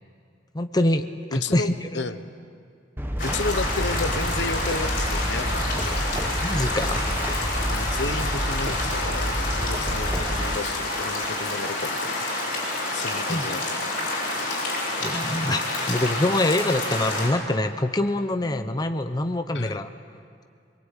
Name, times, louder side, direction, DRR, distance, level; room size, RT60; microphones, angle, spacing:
voice 1, 0.5-1.9 6.4-7.0 13.3-13.5 15.0-19.9, left 1 dB, 20° left, 7 dB, 0.9 m, -25 dB
voice 2, 1.3-2.3 3.2-5.9 7.7-12.1 12.9-13.8 19.5-19.8, left 3 dB, 75° left, 10 dB, 1.1 m, -32 dB
sound 1, 3.0-10.6, equal, 10° right, 1.3 m, -29 dB
sound 2, 3.2-17.3, left 2 dB, 50° left, 7.6 m, -28 dB
23.0 x 23.0 x 9.2 m, 2.4 s
head